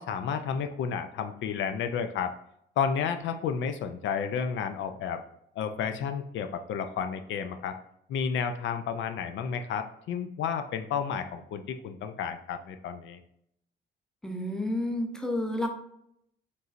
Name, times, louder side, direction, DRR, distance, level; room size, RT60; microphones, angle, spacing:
voice 1, 0.0-2.3 2.8-5.2 5.6-7.8 8.1-13.2, left 7 dB, 70° left, 8 dB, 0.4 m, -31 dB
voice 2, 14.2-15.7, left 1 dB, 5° left, 3 dB, 0.7 m, -30 dB
5.3 x 3.1 x 2.5 m, 0.74 s
cardioid pair, 90°, 20 cm